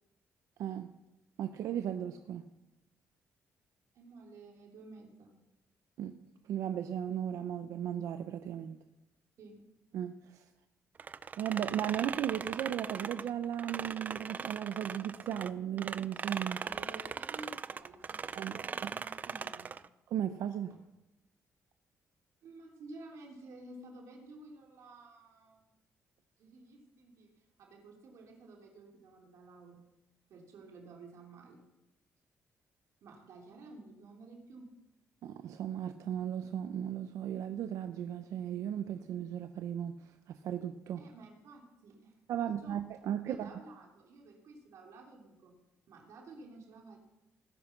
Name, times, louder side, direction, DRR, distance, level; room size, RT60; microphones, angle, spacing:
voice 1, 1.4-2.5 6.0-6.1 6.4-8.8 9.9-10.5 11.4-16.6 18.3-18.9 20.1-20.7 35.2-41.0 42.3-43.5, right 10 dB, 90° right, 9 dB, 0.8 m, -36 dB
voice 2, 3.9-5.3 9.4-9.6 16.6-19.7 22.4-25.7 26.4-29.9 30.3-31.7 33.0-34.7 41.0-42.8 43.2-45.6 45.9-47.0, right 2 dB, 70° right, 1 dB, 3.3 m, -52 dB
sound 1, 11.0-15.5 15.8-19.9, right 6 dB, 30° right, 0.5 m, -39 dB
19.0 x 9.8 x 6.0 m, 0.97 s
cardioid pair, 155°, 5 cm